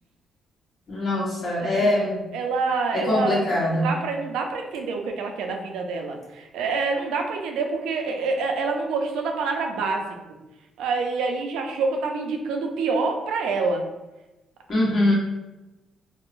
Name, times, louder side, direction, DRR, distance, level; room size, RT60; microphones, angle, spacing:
voice 1, 0.9-2.2 2.9-3.9 14.7-15.1, left 1 dB, 45° left, -5 dB, 1.1 m, -22 dB
voice 2, 1.6-2.1 2.3-10.0 10.8-13.8, right 4 dB, 90° right, 3 dB, 0.4 m, -27 dB
3.6 x 2.0 x 2.5 m, 1.0 s
cardioid pair, 90°, 0 cm